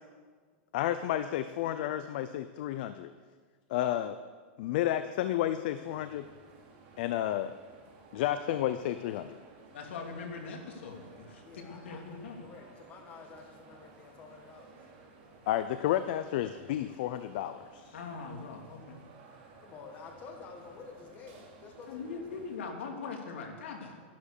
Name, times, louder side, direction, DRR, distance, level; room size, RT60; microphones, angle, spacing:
voice 1, 0.7-3.1 3.7-4.1 4.6-6.3 7.0-7.6 8.1-9.4 15.5-17.9, left 12 dB, 55° left, 11 dB, 0.6 m, -31 dB
sound 1, 5.8-22.6, right 3 dB, 45° right, 3.2 m, -56 dB
voice 2, 9.7-12.4 17.9-19.0 21.9-24.0, left 4 dB, 80° left, 2 dB, 2.8 m, -41 dB
voice 3, 11.4-14.8 18.8-18.9 19.6-22.7, left 5 dB, 25° left, 3 dB, 1.8 m, -50 dB
12.5 x 11.5 x 6.8 m, 1.6 s
supercardioid pair, 165°, 6 cm